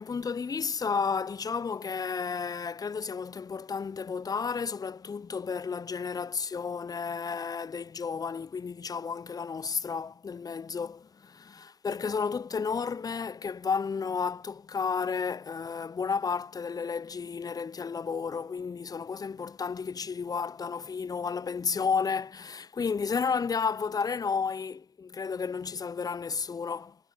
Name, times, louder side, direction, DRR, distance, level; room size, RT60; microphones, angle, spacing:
voice 1, 0.0-27.0, left 5 dB, 20° left, 0.7 m, -32 dB
hypercardioid pair, 65°, 19 cm